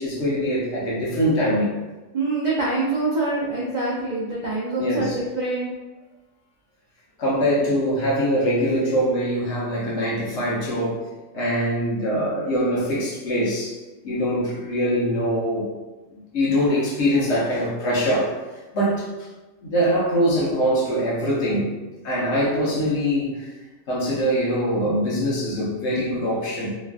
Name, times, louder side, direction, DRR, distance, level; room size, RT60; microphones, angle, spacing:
voice 1, 0.0-1.7 4.8-5.2 7.2-11.0 11.3-13.8 14.0-15.7 16.3-18.4 18.7-19.0 19.6-21.7 22.0-23.5 23.9-26.7, equal, 60° left, -6 dB, 1.0 m, -23 dB
voice 2, 2.1-5.7, right 2 dB, 65° right, -6 dB, 0.4 m, -25 dB
3.1 x 2.3 x 2.5 m, 1.1 s
omnidirectional pair, 1.4 m